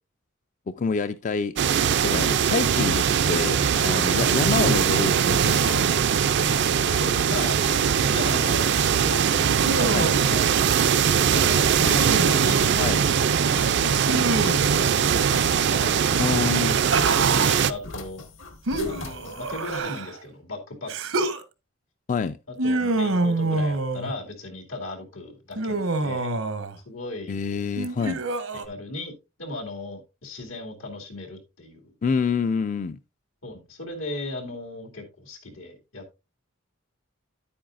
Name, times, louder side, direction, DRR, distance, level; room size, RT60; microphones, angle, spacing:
voice 1, 0.7-1.5 2.0-5.8 9.9-10.1 12.8-13.0 16.2-16.8 22.1-22.4 27.3-28.2 32.0-33.0, left 5 dB, 40° left, 0.4 m, -27 dB
sound 1, 1.6-17.7, right 7 dB, 55° right, 0.4 m, -21 dB
sound 2, 2.9-19.8, left 1 dB, 65° left, 1.6 m, -39 dB
voice 2, 6.8-10.6 11.3-11.6 11.9-13.0 13.5-16.3 17.3-18.2 18.8-21.3 22.5-26.3 26.9-27.4 28.6-29.1 29.4-31.9 33.4-36.1, left 2 dB, 85° left, 2.4 m, -36 dB
Human voice, 9.6-10.4 11.8-12.5 14.1-14.8 16.4-17.6 18.7-20.2 20.9-21.4 22.6-24.1 25.6-26.8 27.8-28.6, right 2 dB, 80° right, 1.0 m, -27 dB
10.0 x 8.7 x 2.5 m
head